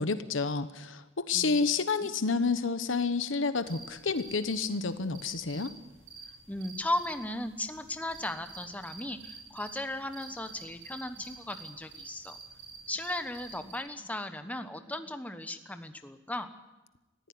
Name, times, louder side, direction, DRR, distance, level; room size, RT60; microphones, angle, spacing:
voice 1, 0.0-5.7, left 4 dB, 75° left, 12 dB, 1.1 m, -29 dB
sound 1, 3.6-13.8, right 4 dB, 85° right, 4.5 m, -49 dB
voice 2, 6.5-12.4 12.9-16.5, left 1 dB, 10° left, 8 dB, 1.2 m, -36 dB
20.0 x 15.0 x 9.6 m, 1.0 s
head